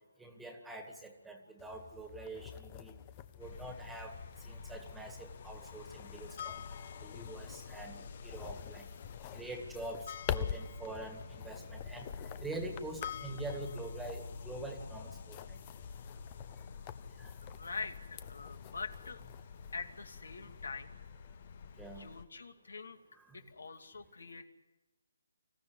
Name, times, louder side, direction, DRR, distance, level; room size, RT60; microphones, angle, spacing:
voice 1, 0.2-2.9 3.4-4.1 4.5-6.5 7.0-8.0 8.2-8.9 9.3-10.0 10.3-12.1 12.4-15.4 17.2-17.3 21.8-22.1, right 2 dB, 5° right, 4 dB, 2.0 m, -45 dB
sound 1, 1.6-20.7, left 10 dB, 25° left, 0.8 m, -47 dB
sound 2, 3.4-22.2, left 6 dB, 45° left, 1.2 m, -48 dB
voice 2, 17.4-19.2 19.7-21.0 21.7-23.0 23.3-24.5, left 4 dB, 75° left, 6 dB, 2.5 m, -44 dB
25.5 x 15.0 x 9.8 m, 1.1 s
hypercardioid pair, 160°, 0 cm